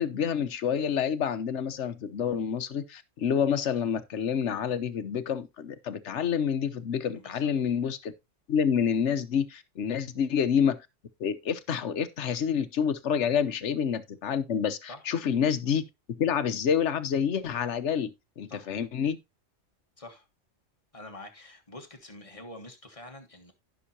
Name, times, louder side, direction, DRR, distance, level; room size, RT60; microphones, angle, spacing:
voice 1, 0.0-8.1 8.5-10.8 11.2-15.8 16.2-18.1 18.4-19.2, left 7 dB, 70° left, 1.1 m, -28 dB
voice 2, 7.2-7.5 9.9-10.0 13.4-13.5 14.9-15.0 18.5-18.7 20.0-20.3 20.9-23.5, left 1 dB, 25° left, 1.5 m, -46 dB
14.5 x 6.1 x 2.8 m
omnidirectional pair, 1.3 m